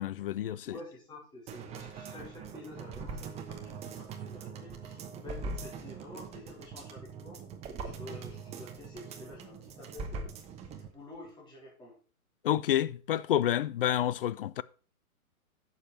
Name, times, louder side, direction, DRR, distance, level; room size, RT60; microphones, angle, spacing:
voice 1, 0.0-0.8 12.4-14.6, left 11 dB, 40° left, 0.5 m, -29 dB
voice 2, 0.6-7.4 7.8-10.3 10.8-12.0, left 2 dB, 10° left, 3.9 m, -49 dB
sound 1, 1.5-10.9 11.2-11.3, right 4 dB, 15° right, 1.0 m, -42 dB
10.5 x 7.1 x 4.3 m
hypercardioid pair, 140°, 44 cm